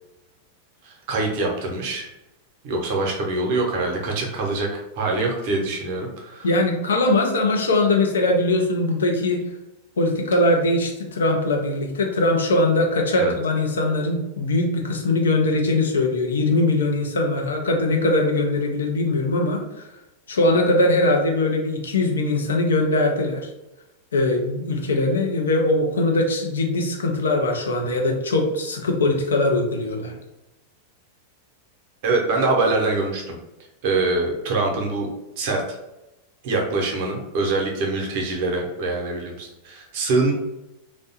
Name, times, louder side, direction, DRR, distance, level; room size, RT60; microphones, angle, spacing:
voice 1, 0.8-2.1 2.6-6.5 13.2-13.3 32.0-33.3 33.8-35.1 35.4-35.6 36.4-40.3, right 3 dB, 50° right, 0 dB, 0.6 m, -24 dB
voice 2, 6.4-9.4 10.0-19.6 20.3-23.5 24.1-30.1, left 2 dB, 70° left, 1 dB, 0.4 m, -21 dB
2.6 x 2.1 x 2.7 m, 0.96 s
figure-of-eight pair, 90°, 0 cm